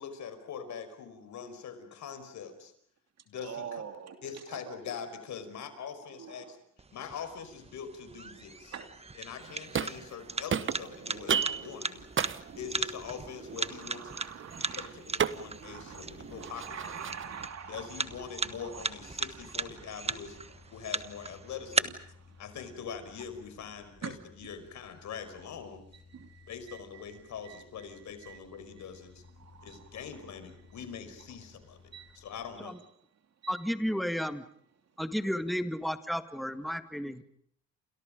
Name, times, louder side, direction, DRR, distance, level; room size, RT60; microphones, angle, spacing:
voice 1, 0.0-2.7 3.3-3.8 4.2-6.6 6.9-8.8 9.1-12.1 12.6-14.2 14.8-16.8 17.7-20.4 20.7-22.0 22.4-25.8 26.5-29.2 29.6-31.8 32.1-32.8, left 7 dB, 70° left, 9 dB, 5.3 m, -43 dB
voice 2, 3.4-4.8 6.2-6.5 8.7-8.9 10.3-10.4 13.6-14.9 15.3-16.1 16.4-20.1 22.3-22.4 24.0-24.1 26.1-27.2 27.4-27.6 27.9-28.4 28.8-28.9 29.4-30.3 31.9-32.2 33.4-33.6 34.2-34.3, right 7 dB, 60° right, 6 dB, 3.0 m, -46 dB
sound 1, 6.8-21.8, right 3 dB, 20° right, 1.4 m, -38 dB
sound 2, 9.4-10.2 10.5-17.5, right 7 dB, 40° right, 1.3 m, -35 dB
sound 3, 15.4-32.6, left 5 dB, 35° left, 3.1 m, -58 dB
voice 3, 33.5-34.4 35.0-37.2, equal, ahead, 9 dB, 2.0 m, -32 dB
30.0 x 28.0 x 5.2 m, 0.63 s
cardioid pair, 90°, 30 cm